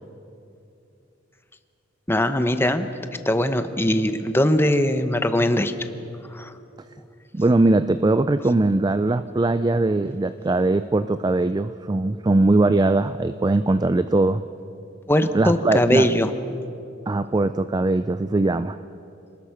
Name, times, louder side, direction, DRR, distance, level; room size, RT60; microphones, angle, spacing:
voice 1, 2.1-2.9 3.2-5.7 6.3-6.5 15.1-16.3, left 1 dB, 10° left, 9 dB, 0.9 m, -20 dB
voice 2, 7.3-14.4 15.3-16.1 17.1-18.8, right 2 dB, 20° right, 12 dB, 0.4 m, -20 dB
28.5 x 20.0 x 5.8 m, 2.7 s
head